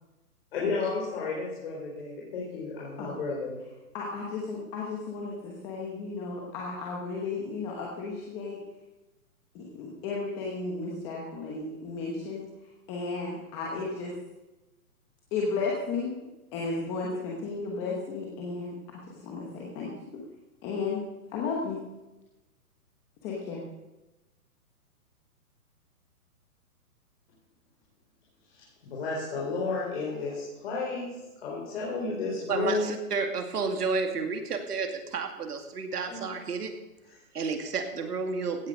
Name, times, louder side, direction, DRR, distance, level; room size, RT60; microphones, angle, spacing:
voice 1, 0.5-3.6 28.5-31.1 31.4-32.9 36.1-36.2 37.1-37.2, left 3 dB, 40° left, -4 dB, 4.0 m, -32 dB
voice 2, 3.9-8.6 9.5-12.4 12.9-14.1 15.3-16.1 16.5-18.7 19.2-19.9 20.6-21.0 21.3-21.8 23.2-23.6, left 4 dB, 10° left, -3 dB, 1.1 m, -33 dB
voice 3, 32.5-36.7 37.3-38.7, right 4 dB, 85° right, 5 dB, 2.5 m, -31 dB
16.0 x 9.7 x 5.3 m, 1.0 s
hypercardioid pair, 170°, 45 cm